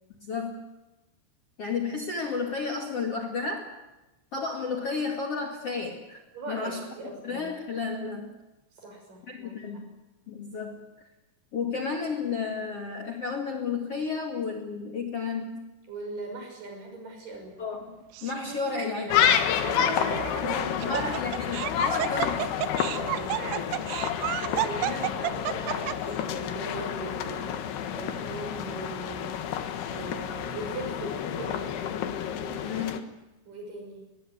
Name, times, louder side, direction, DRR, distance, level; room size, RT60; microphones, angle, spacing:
voice 1, 0.2-0.6 1.6-3.7 4.3-6.2 6.5-6.8 7.2-8.4 9.3-9.9 10.3-10.8 11.5-15.7 17.6-19.1 20.4-22.4 32.6-33.0, left 4 dB, 40° left, 5 dB, 2.6 m, -32 dB
voice 2, 6.3-7.5 8.7-9.6 15.9-17.6 18.6-19.4 19.6-21.2 21.5-21.6 22.0-22.2 22.9-23.8 24.4-27.6 27.9-29.4 29.9-31.8 32.3-32.8 33.5-34.1, right 2 dB, 50° right, 3 dB, 7.9 m, -39 dB
Laughter, 18.1-18.6 19.2-19.3 20.6-26.2, right 13 dB, 90° right, 3.3 m, -31 dB
sound 1, 19.1-33.0, left 9 dB, 70° left, 3.4 m, -29 dB
23.0 x 20.0 x 9.5 m, 1.0 s
omnidirectional pair, 5.0 m